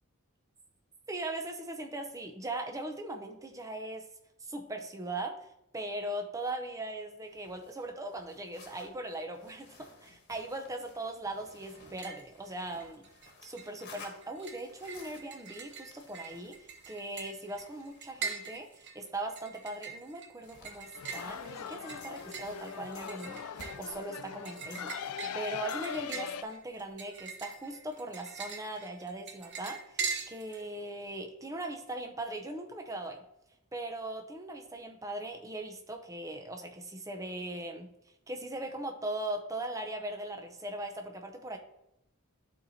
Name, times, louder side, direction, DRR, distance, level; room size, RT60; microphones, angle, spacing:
voice 1, 1.1-4.0 4.4-5.5 5.7-13.1 13.4-18.7 18.9-33.2 33.7-37.9 38.3-41.6, right 1 dB, 15° right, 3 dB, 0.6 m, -39 dB
sound 1, 7.2-19.9 20.4-24.0, left 3 dB, 50° left, 1.3 m, -56 dB
sound 2, 11.8-12.3 12.6-13.3 13.6-30.6, right 6 dB, 50° right, 0.7 m, -42 dB
sound 3, 21.0-26.4, left 8 dB, 85° left, 0.4 m, -41 dB
11.5 x 4.3 x 2.7 m, 0.85 s
head